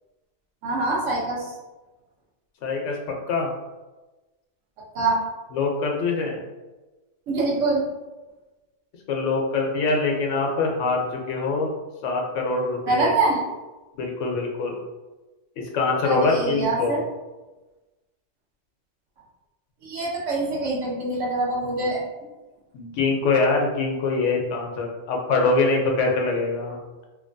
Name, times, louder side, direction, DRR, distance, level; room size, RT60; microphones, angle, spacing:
voice 1, 0.6-1.5 4.9-5.2 7.3-7.8 12.9-13.4 16.0-17.0 19.8-22.0, right 2 dB, 85° right, -4 dB, 1.1 m, -24 dB
voice 2, 2.6-3.5 5.5-6.4 9.1-11.7 12.0-13.1 13.9-14.8 15.7-17.0 22.7-26.8, left 3 dB, 90° left, 0 dB, 1.0 m, -24 dB
2.9 x 2.2 x 2.5 m, 1.2 s
omnidirectional pair, 1.2 m